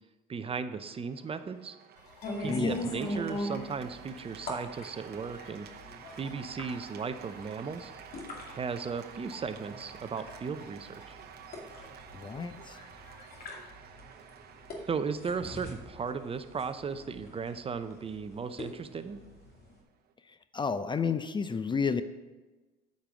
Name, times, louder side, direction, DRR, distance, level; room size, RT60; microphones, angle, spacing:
voice 1, 0.3-1.7 2.4-5.7 6.2-7.9 8.5-11.2 14.9-19.2, right 5 dB, 30° right, 11 dB, 0.7 m, -36 dB
Cheering / Applause, 0.9-20.1, right 8 dB, 55° right, 0.9 m, -51 dB
sound 1, 1.9-13.7, left 5 dB, 90° left, 1.2 m, -58 dB
sound 2, 2.2-19.8, left 1 dB, 50° left, 2.4 m, -41 dB
voice 2, 2.5-2.9 12.1-12.8 20.3-22.0, left 5 dB, 25° left, 11 dB, 0.5 m, -31 dB
8.7 x 5.3 x 6.9 m, 1.2 s
hypercardioid pair, 75°, 20 cm